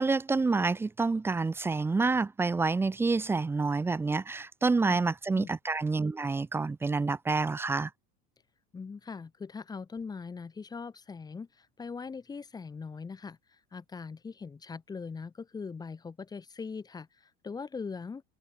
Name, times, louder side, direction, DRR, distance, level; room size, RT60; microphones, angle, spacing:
voice 1, 0.0-7.9, right 3 dB, 10° right, 0.8 m, -28 dB
voice 2, 8.7-18.2, left 5 dB, 15° left, 2.8 m, -41 dB
supercardioid pair, 165°, 31 cm